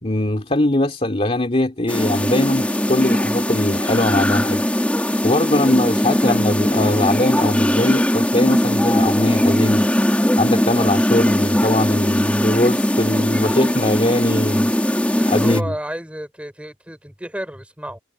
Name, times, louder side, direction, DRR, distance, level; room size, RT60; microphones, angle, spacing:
voice 1, 0.0-4.6 5.2-9.9 10.4-14.7 15.2-15.7, left 1 dB, 35° left, 2.7 m, -21 dB
sound 1, 1.9-15.6, equal, 10° left, 1.9 m, -19 dB
voice 2, 5.7-6.4 15.2-18.0, equal, 5° right, 4.9 m, -32 dB
head